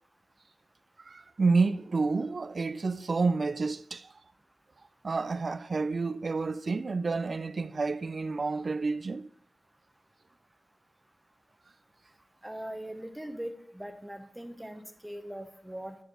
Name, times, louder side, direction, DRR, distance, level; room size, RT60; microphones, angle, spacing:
voice 1, 1.1-4.1 5.0-9.3, right 4 dB, 60° right, 0.3 m, -29 dB
voice 2, 12.4-16.0, right 1 dB, 10° right, 0.9 m, -41 dB
10.0 x 4.7 x 3.8 m
cardioid pair, 45°, 0 cm